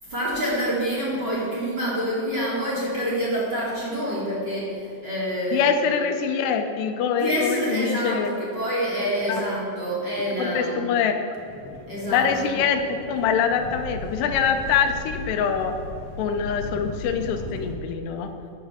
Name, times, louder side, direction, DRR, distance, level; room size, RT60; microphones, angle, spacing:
voice 1, 0.0-5.8 7.2-10.9 11.9-12.5, equal, 30° right, -7 dB, 2.6 m, -27 dB
voice 2, 5.5-8.3 9.3-9.4 10.4-11.1 12.1-15.8 16.2-18.3, left 7 dB, 85° left, 6 dB, 2.9 m, -24 dB
sound 1, 11.3-17.8, left 2 dB, 65° left, 2.7 m, -37 dB
10.0 x 7.4 x 6.2 m, 2.5 s
omnidirectional pair, 4.7 m